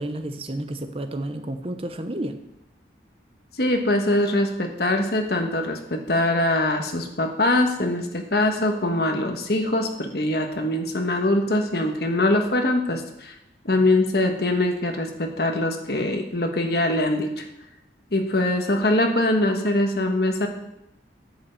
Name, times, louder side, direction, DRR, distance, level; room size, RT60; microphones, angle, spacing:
voice 1, 0.0-2.4, right 1 dB, 30° right, 7 dB, 0.8 m, -31 dB
voice 2, 3.6-13.3 13.6-17.4 18.1-20.5, left 1 dB, 60° left, 4 dB, 1.4 m, -23 dB
9.6 x 5.6 x 7.5 m, 0.84 s
head